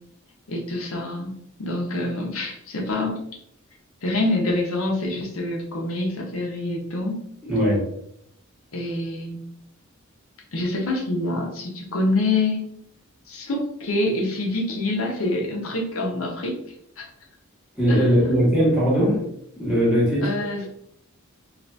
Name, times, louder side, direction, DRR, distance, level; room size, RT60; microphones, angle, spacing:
voice 1, 0.5-1.3 1.6-3.2 4.0-7.3 8.7-9.4 10.5-12.6 13.3-16.6 17.0-17.1 17.9-18.1 20.2-20.6, left 2 dB, 75° left, -1 dB, 0.7 m, -26 dB
voice 2, 7.4-7.8 17.8-19.2 19.6-20.3, equal, 5° right, -8 dB, 1.3 m, -19 dB
2.7 x 2.4 x 3.3 m, 0.73 s
head